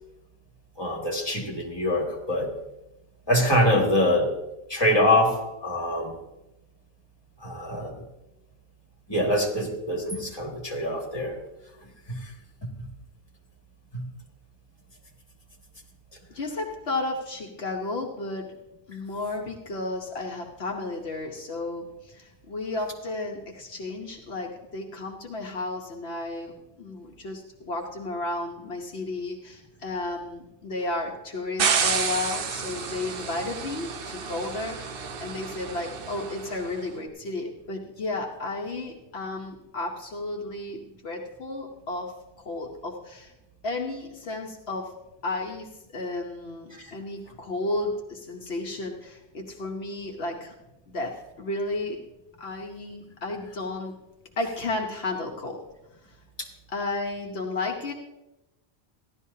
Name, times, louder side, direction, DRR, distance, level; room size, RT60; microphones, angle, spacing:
voice 1, 0.8-2.5 3.3-4.3 4.7-6.2 7.4-8.0 9.1-11.4 12.1-12.3 13.9-14.1 46.7-46.9, left 1 dB, 25° left, 0 dB, 2.0 m, -24 dB
voice 2, 16.3-18.5 18.9-26.5 26.8-42.1 42.4-43.3 43.6-45.0 45.2-50.5 50.9-52.0 52.4-53.9 54.4-55.6 56.1-56.2 56.7-57.9, left 2 dB, 70° left, 0 dB, 1.3 m, -33 dB
sound 1, 31.6-36.7, right 6 dB, 60° right, 0.9 m, -30 dB
15.5 x 11.5 x 2.8 m, 0.95 s
omnidirectional pair, 1.1 m